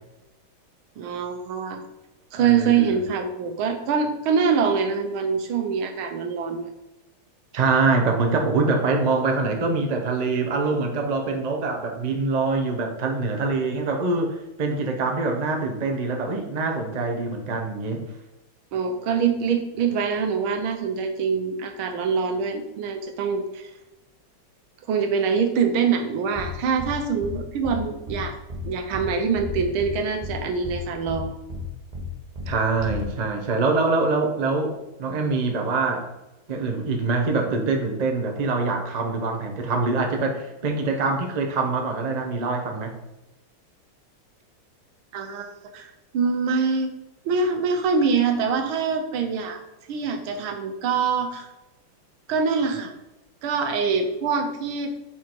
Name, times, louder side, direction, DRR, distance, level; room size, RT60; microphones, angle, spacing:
voice 1, 1.0-1.8 2.3-6.7 18.7-23.7 24.9-28.4 28.6-31.3 45.1-45.5 45.7-46.9 47.2-49.6 49.9-51.5 52.3-52.9 53.4-54.9, right 5 dB, 75° right, 6 dB, 1.7 m, -24 dB
voice 2, 2.4-3.0 7.5-18.0 32.5-36.1 36.5-42.9, right 3 dB, 55° right, 3 dB, 0.4 m, -24 dB
sound 1, 26.3-26.5 26.8-26.9 27.2-27.3 27.6-27.8 28.1-28.2 28.5-28.6 28.9-29.1 29.3-29.9 30.2-30.3 30.6-30.8 31.1-31.2 31.5-31.6 31.9-32.1 32.3-32.5 32.8-33.0, left 1 dB, 25° right, 0.9 m, -33 dB
5.6 x 4.8 x 4.5 m, 0.96 s
omnidirectional pair, 2.3 m